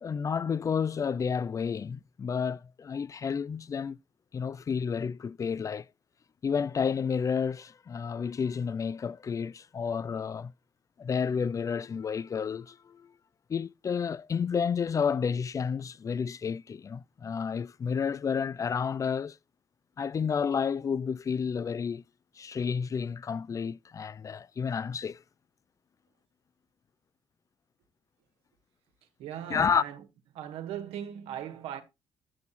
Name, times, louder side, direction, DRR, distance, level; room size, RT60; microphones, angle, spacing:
voice 1, 0.0-4.0 4.3-5.9 6.4-10.5 11.0-13.1 13.5-19.4 20.0-22.0 22.4-25.2 29.5-29.8, left 6 dB, 35° left, 0.4 m, -30 dB
voice 2, 29.2-30.0 30.3-31.8, right 10 dB, 85° right, 1.5 m, -38 dB
8.5 x 6.8 x 4.2 m
cardioid pair, 80°, 10 cm